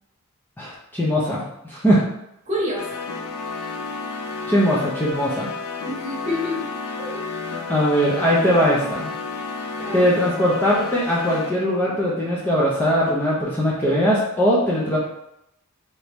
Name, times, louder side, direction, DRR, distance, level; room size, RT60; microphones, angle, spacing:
voice 1, 0.6-2.0 4.5-5.5 7.7-9.1 9.9-15.0, equal, 10° left, -7 dB, 0.4 m, -20 dB
voice 2, 2.5-3.0 5.9-6.7 7.0-7.4 9.8-10.1, left 1 dB, 30° right, -4 dB, 0.9 m, -28 dB
sound 1, 2.8-11.5, left 4 dB, 90° left, 0.4 m, -31 dB
2.8 x 2.6 x 3.3 m, 0.81 s
head